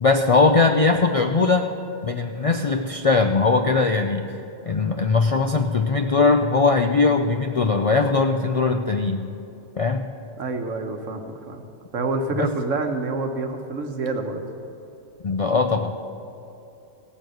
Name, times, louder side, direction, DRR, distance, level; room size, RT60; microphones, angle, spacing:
voice 1, 0.0-1.7 2.0-4.3 4.7-9.3 9.8-10.1 12.4-12.5 15.2-15.9, left 3 dB, 55° left, 5 dB, 0.3 m, -20 dB
voice 2, 10.4-11.7 11.9-14.4, right 3 dB, 85° right, 5 dB, 1.5 m, -27 dB
16.0 x 7.1 x 7.8 m, 3.0 s
omnidirectional pair, 1.3 m